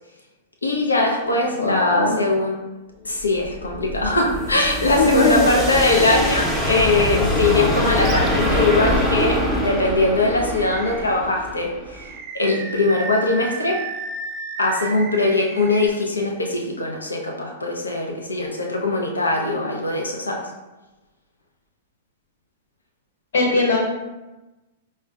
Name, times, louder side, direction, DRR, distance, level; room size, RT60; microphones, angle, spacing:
voice 1, 0.6-2.6 3.0-12.1 12.3-13.8 14.6-20.5, left 2 dB, 85° left, 0 dB, 0.5 m, -21 dB
voice 2, 1.5-2.2 5.0-5.5 23.3-23.8, left 2 dB, 70° left, -2 dB, 1.2 m, -19 dB
sound 1, 3.2-12.1, left 1 dB, 5° left, 0.6 m, -24 dB
Animal, 7.9-8.3 8.8-8.9 10.5-11.3 11.9-15.9, right 4 dB, 35° right, 0.4 m, -34 dB
4.9 x 2.1 x 2.3 m, 1.1 s
figure-of-eight pair, 105°, 0 cm